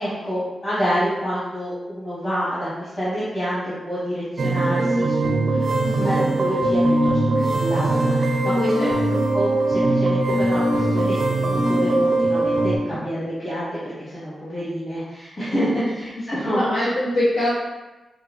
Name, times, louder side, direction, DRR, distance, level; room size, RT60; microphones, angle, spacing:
voice 1, 0.0-5.7 5.9-8.9 9.3-16.7, equal, 20° left, -11 dB, 0.9 m, -27 dB
sound 1, 4.4-12.8, right 2 dB, 50° right, 0.4 m, -20 dB
voice 2, 5.8-6.2 8.8-9.2 15.7-15.9 16.5-17.5, left 1 dB, 90° left, -7 dB, 0.5 m, -24 dB
3.8 x 2.1 x 2.3 m, 1.1 s
wide cardioid pair, 120°, 0 cm